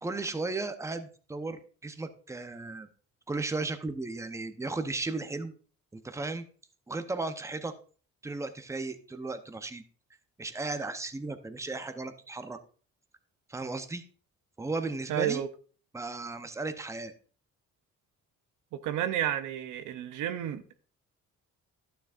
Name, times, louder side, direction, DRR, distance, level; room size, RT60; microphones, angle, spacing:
voice 1, 0.0-2.9 3.3-5.5 5.9-6.4 6.9-7.7 8.2-9.8 10.4-12.6 13.5-14.0 14.6-15.4 15.9-17.1, right 3 dB, 10° right, 0.7 m, -35 dB
voice 2, 15.1-15.5 18.8-20.7, right 11 dB, 80° right, 0.7 m, -31 dB
11.5 x 6.9 x 2.5 m
cardioid pair, 90°, 30 cm